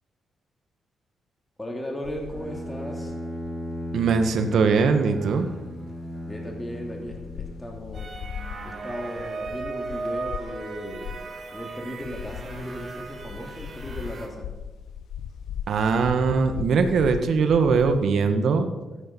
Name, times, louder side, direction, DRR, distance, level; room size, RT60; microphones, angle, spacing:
voice 1, 1.6-3.1 6.3-8.1 8.6-11.2 11.5-14.5, equal, 15° left, 0 dB, 2.7 m, -36 dB
sound 1, 2.0-5.7 6.2-6.3 6.5-6.6 6.9-18.0, left 8 dB, 80° left, 0.6 m, -39 dB
Bowed string instrument, 2.3-8.1, left 1 dB, 5° right, 3.1 m, -37 dB
voice 2, 3.9-5.5 15.7-18.7, right 5 dB, 70° right, 7 dB, 1.4 m, -21 dB
sound 2, 7.9-14.3, right 3 dB, 45° right, 2.4 m, -36 dB
14.0 x 8.7 x 5.4 m, 1.1 s
cardioid pair, 95°, 0 cm